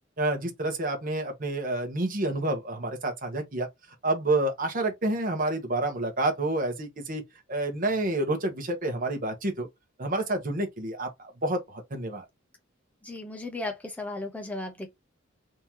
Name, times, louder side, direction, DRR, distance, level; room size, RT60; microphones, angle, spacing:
voice 1, 0.2-3.7 4.0-7.2 7.5-9.7 10.0-12.2, right 2 dB, 45° right, 1.0 m, -29 dB
voice 2, 13.0-14.9, left 2 dB, 5° left, 0.7 m, -35 dB
3.6 x 2.8 x 2.9 m
head